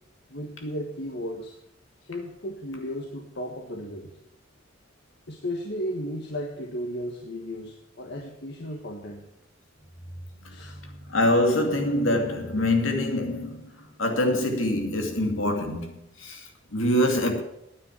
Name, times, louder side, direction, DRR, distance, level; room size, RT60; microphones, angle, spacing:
voice 1, 0.3-1.6 2.0-4.2 5.3-9.3 10.5-10.8, equal, 60° left, 1.4 m, -34 dB
voice 2, 10.4-17.4, left 1 dB, 85° left, 2.5 m, -25 dB
10.0 x 9.4 x 8.3 m
head